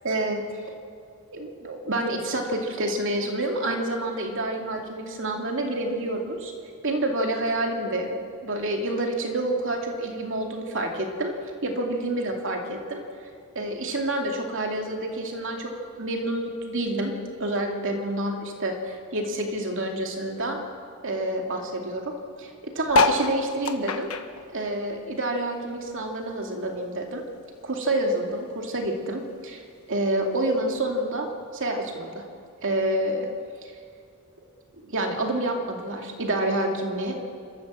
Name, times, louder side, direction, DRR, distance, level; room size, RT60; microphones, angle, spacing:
voice 1, 0.0-0.4 1.3-6.5 6.8-11.3 11.6-13.0 13.5-17.1 17.4-20.6 21.0-24.1 24.5-27.2 27.6-29.6 29.9-31.3 31.5-32.2 32.6-33.3 33.6-33.7 34.8-37.1, right 1 dB, 60° right, 2 dB, 2.6 m, -28 dB
sound 1, 22.9-25.6 26.0-27.5 28.0-28.1 28.3-28.4 28.5-28.9 29.7-29.8, left 2 dB, 70° left, 1.2 m, -26 dB
28.0 x 13.0 x 7.5 m, 2.3 s
head